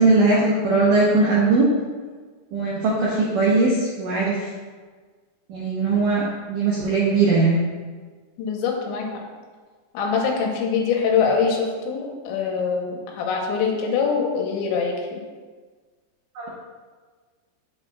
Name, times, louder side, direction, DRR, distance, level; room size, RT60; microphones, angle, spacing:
voice 1, 0.0-1.7 2.5-4.5 5.5-7.6 16.4-16.5, right 3 dB, 85° right, -6 dB, 1.9 m, -19 dB
voice 2, 8.4-9.1 9.9-15.2, left 5 dB, 90° left, 1 dB, 3.2 m, -23 dB
7.9 x 7.1 x 2.3 m, 1.5 s
omnidirectional pair, 5.2 m